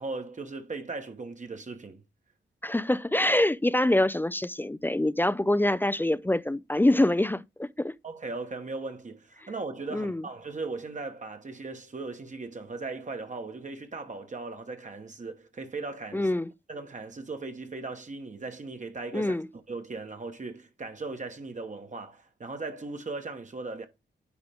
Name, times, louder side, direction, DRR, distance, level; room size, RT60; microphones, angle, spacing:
voice 1, 0.0-2.0 8.0-16.3 16.7-19.4 19.7-23.9, right 3 dB, 40° right, 1.1 m, -38 dB
voice 2, 2.6-8.0 9.9-10.2 16.1-16.5 19.1-19.5, left 1 dB, 10° left, 0.3 m, -25 dB
9.7 x 3.6 x 3.5 m
cardioid pair, 85°, 19 cm